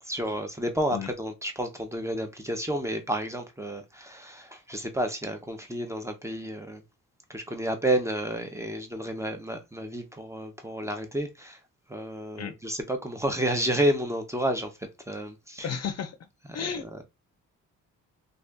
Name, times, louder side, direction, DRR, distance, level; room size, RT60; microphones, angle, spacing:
voice 1, 0.0-6.8 7.3-11.6 11.9-15.7 16.9-17.0, right 1 dB, 10° right, 0.7 m, -30 dB
voice 2, 15.6-16.2 16.5-17.0, left 7 dB, 50° left, 0.6 m, -33 dB
2.7 x 2.5 x 3.4 m
cardioid pair, 90°, 33 cm